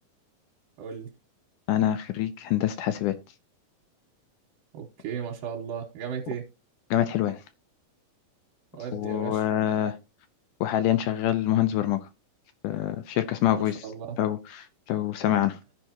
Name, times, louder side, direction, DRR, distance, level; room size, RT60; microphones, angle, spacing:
voice 1, 0.8-1.1 4.7-6.5 8.7-9.4 13.6-14.2, right 7 dB, 75° right, 2.6 m, -35 dB
voice 2, 1.7-3.2 6.9-7.4 8.9-10.0 10.6-12.0 12.6-13.8 14.2-15.5, left 12 dB, 80° left, 1.9 m, -25 dB
15.0 x 5.4 x 2.9 m
omnidirectional pair, 4.2 m